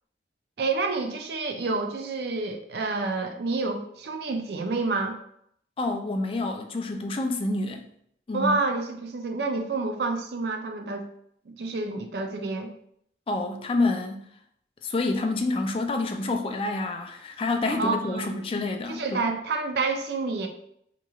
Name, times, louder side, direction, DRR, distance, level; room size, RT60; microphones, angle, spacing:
voice 1, 0.6-5.2 8.3-11.1 11.5-12.7 17.7-18.3 18.9-20.5, right 3 dB, 60° right, 0.4 m, -28 dB
voice 2, 5.8-7.8 8.3-8.6 13.3-14.2 14.8-19.3, left 2 dB, 30° left, 0.3 m, -28 dB
3.7 x 3.0 x 2.3 m
head